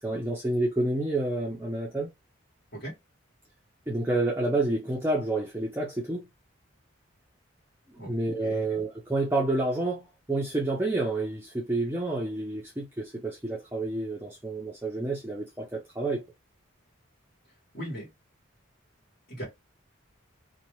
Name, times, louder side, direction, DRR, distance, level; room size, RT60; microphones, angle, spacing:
voice 1, 0.0-2.1 3.9-6.3 7.9-16.2, right 2 dB, 10° right, 0.6 m, -29 dB
voice 2, 8.4-8.8 17.7-18.1 19.3-19.4, equal, 50° left, 1.5 m, -38 dB
2.9 x 2.2 x 3.0 m
head